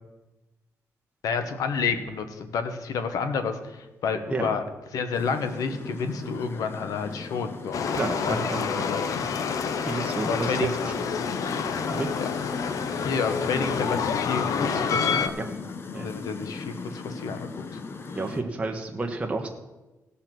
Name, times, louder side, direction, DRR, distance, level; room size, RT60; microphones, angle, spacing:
voice 1, 1.2-4.6 4.9-7.8 8.2-9.2 10.2-10.7 12.2-12.3 13.0-15.3 16.0-17.8, left 5 dB, 85° left, 9 dB, 1.2 m, -30 dB
sound 1, 5.1-18.4, left 4 dB, 45° left, 0.9 m, -38 dB
sound 2, 7.7-15.3, left 6 dB, 70° left, 0.8 m, -28 dB
voice 2, 7.9-8.6 9.8-10.9 11.9-12.1 15.3-15.5 15.9-16.1 18.1-19.5, right 3 dB, 20° right, 2 dB, 1.1 m, -30 dB
17.0 x 5.8 x 6.0 m, 1.1 s
wide cardioid pair, 135°, 6 cm